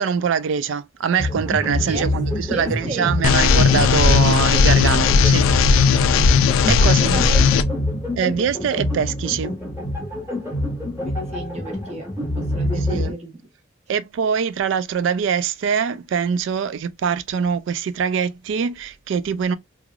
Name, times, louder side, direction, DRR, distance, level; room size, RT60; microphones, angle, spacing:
voice 1, 0.0-5.5 6.7-7.2 8.2-9.5 12.9-13.2 13.9-19.6, right 7 dB, 70° right, 0.3 m, -23 dB
sound 1, 1.2-13.1, left 1 dB, 15° right, 1.3 m, -26 dB
voice 2, 2.5-3.1 6.7-7.5 11.0-12.1 12.3-13.4, right 1 dB, 35° right, 1.0 m, -33 dB
sound 2, 3.2-7.6, left 6 dB, 80° left, 0.3 m, -16 dB
3.1 x 2.3 x 2.4 m
head